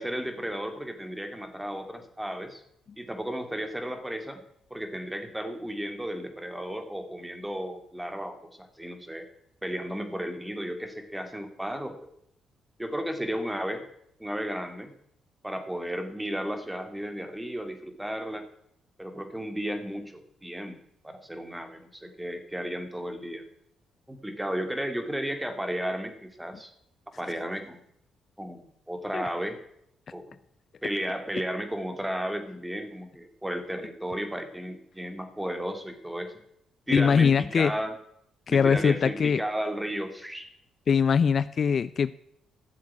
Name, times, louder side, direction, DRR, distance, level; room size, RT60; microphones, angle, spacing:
voice 1, 0.0-2.6 3.0-4.4 4.7-9.3 9.6-12.1 12.8-13.8 14.2-14.9 15.4-18.4 19.0-20.8 21.0-23.5 24.1-26.7 27.2-27.8 28.4-29.6 30.1-30.4 30.8-36.3 36.9-37.9 38.5-40.5, equal, 5° right, 7 dB, 2.5 m, -34 dB
voice 2, 36.9-37.7 38.5-39.4 40.9-42.1, left 6 dB, 50° left, 16 dB, 0.5 m, -22 dB
15.0 x 7.4 x 9.7 m, 0.73 s
cardioid pair, 90°, 0 cm